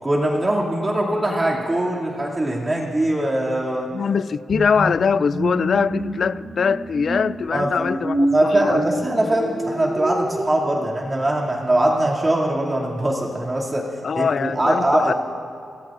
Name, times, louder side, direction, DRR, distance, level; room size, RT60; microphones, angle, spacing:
voice 1, 0.0-3.9 7.5-7.7 8.3-13.9 14.1-15.1, right 1 dB, 20° right, 2.5 m, -21 dB
voice 2, 3.9-8.8 14.0-15.1, left 6 dB, 50° left, 0.3 m, -22 dB
sound 1, 4.5-10.5, right 1 dB, 35° right, 3.3 m, -27 dB
27.5 x 18.5 x 2.5 m
wide cardioid pair, 140°, 0 cm